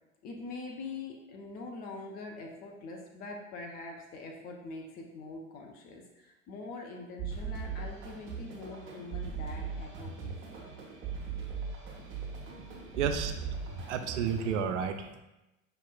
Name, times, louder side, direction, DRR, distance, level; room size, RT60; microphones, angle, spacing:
voice 1, 0.2-10.7, left 3 dB, 25° left, 1 dB, 0.4 m, -44 dB
sound 1, 7.2-14.5, right 6 dB, 30° right, 1.0 m, -39 dB
voice 2, 13.0-13.4 13.9-15.2, right 7 dB, 60° right, 8 dB, 0.5 m, -31 dB
5.3 x 2.9 x 2.3 m, 0.97 s
figure-of-eight pair, 75°, 41 cm